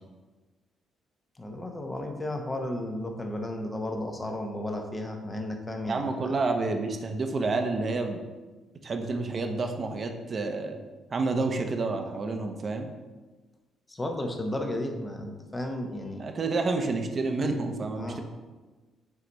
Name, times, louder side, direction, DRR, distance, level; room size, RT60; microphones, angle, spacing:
voice 1, 1.4-6.4 13.9-16.3 18.0-18.2, left 1 dB, 20° left, 3 dB, 0.9 m, -33 dB
voice 2, 5.9-8.2 8.8-10.8 11.1-12.9 16.2-18.2, right 3 dB, 45° right, 5 dB, 0.8 m, -29 dB
8.1 x 3.3 x 4.1 m, 1.3 s
cardioid pair, 90°, 0 cm